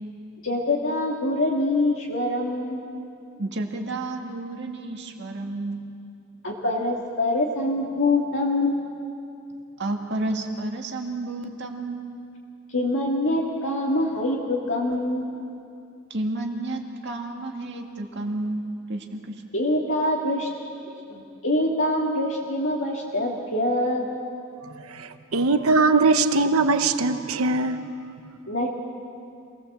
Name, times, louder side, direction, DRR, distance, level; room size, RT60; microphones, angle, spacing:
voice 1, 0.4-2.8 6.4-8.8 12.7-15.2 19.5-20.5 21.1-24.1 28.5-28.7, left 1 dB, 60° left, -3 dB, 2.2 m, -24 dB
voice 2, 3.4-5.9 9.8-12.2 16.1-18.6 18.9-19.4, right 2 dB, 55° right, 2 dB, 2.0 m, -31 dB
voice 3, 24.9-27.8, right 3 dB, 90° right, 9 dB, 1.0 m, -21 dB
27.0 x 18.5 x 7.4 m, 2.5 s
head